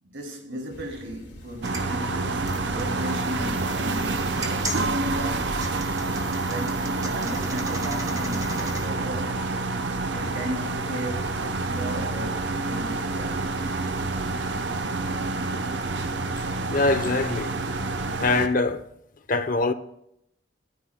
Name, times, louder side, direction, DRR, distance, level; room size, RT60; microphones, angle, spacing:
voice 1, 0.0-5.6 6.5-9.5 10.0-13.5, equal, 85° right, 2.5 m, -36 dB
sound 1, 0.7-14.7, equal, 65° left, 3.2 m, -47 dB
sound 2, 1.5-8.9, right 1 dB, 20° right, 1.3 m, -38 dB
sound 3, 1.6-18.5, right 3 dB, 65° right, 0.8 m, -28 dB
voice 2, 16.7-17.5 18.2-18.8 19.3-19.7, left 3 dB, 45° left, 0.7 m, -23 dB
22.0 x 9.3 x 2.2 m
head